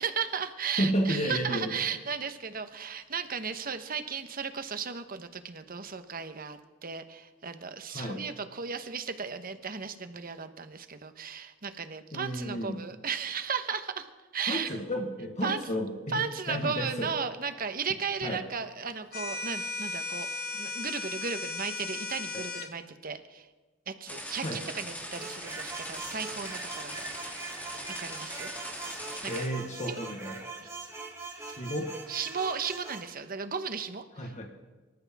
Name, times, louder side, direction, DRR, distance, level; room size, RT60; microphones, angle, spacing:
voice 1, 0.0-14.8 15.4-15.6 16.1-23.5 23.9-27.5 28.0-28.5 29.2-29.4 29.9-30.0 31.5-31.6 32.1-34.5, right 6 dB, 50° right, 9 dB, 1.2 m, -35 dB
voice 2, 0.8-1.8 7.9-8.2 12.1-12.8 14.5-17.1 18.2-18.4 22.3-22.4 24.4-24.6 29.2-30.4 31.4-31.9 34.2-34.5, equal, 40° left, 3 dB, 1.4 m, -32 dB
sound 1, 19.1-22.7, left 3 dB, 55° left, 1.5 m, -36 dB
sound 2, 24.1-29.5, equal, 10° left, 2.8 m, -40 dB
sound 3, 25.1-33.1, right 3 dB, 15° right, 2.5 m, -42 dB
25.0 x 13.5 x 3.6 m, 1.2 s
head